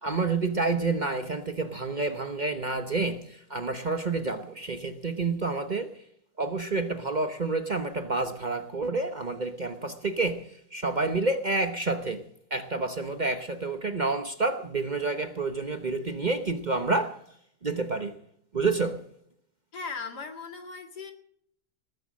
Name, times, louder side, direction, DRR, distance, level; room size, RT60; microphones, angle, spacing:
voice 1, 0.0-6.0 6.4-17.2 17.6-18.2 18.5-19.0, right 3 dB, 35° right, 1.0 m, -29 dB
voice 2, 19.7-21.1, left 5 dB, 85° left, 2.7 m, -38 dB
19.5 x 9.8 x 6.3 m
omnidirectional pair, 1.7 m